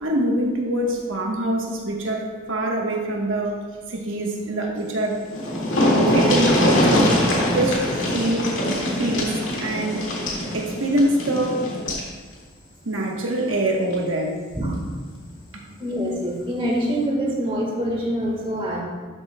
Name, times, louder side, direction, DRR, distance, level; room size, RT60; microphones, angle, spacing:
voice 1, 0.0-3.6 3.9-5.2 5.9-7.1 7.5-8.5 9.0-10.1 10.5-11.8 12.8-14.3 15.5-15.6, right 1 dB, 80° right, 0 dB, 1.1 m, -24 dB
sound 1, 5.0-5.1 5.3-12.1 13.4-13.5 13.9-14.0, left 1 dB, 75° left, 2.0 m, -22 dB
voice 2, 15.8-18.8, equal, 25° right, -2 dB, 1.4 m, -25 dB
12.0 x 7.6 x 2.2 m, 1.4 s
head